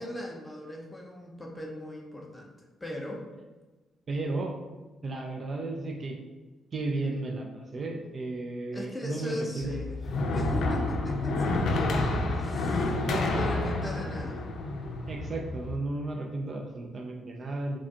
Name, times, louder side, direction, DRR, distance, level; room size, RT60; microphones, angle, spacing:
voice 1, 0.0-3.3 8.7-10.0 10.3-14.5, equal, 10° left, 0 dB, 0.6 m, -38 dB
voice 2, 4.1-4.5 5.0-6.2 6.7-9.7 13.1-13.4 15.1-17.8, right 2 dB, 35° right, 2 dB, 0.4 m, -34 dB
sound 1, 9.6-15.8, left 2 dB, 65° left, 0.5 m, -29 dB
4.8 x 2.3 x 2.8 m, 1.2 s
cardioid pair, 135°, 0 cm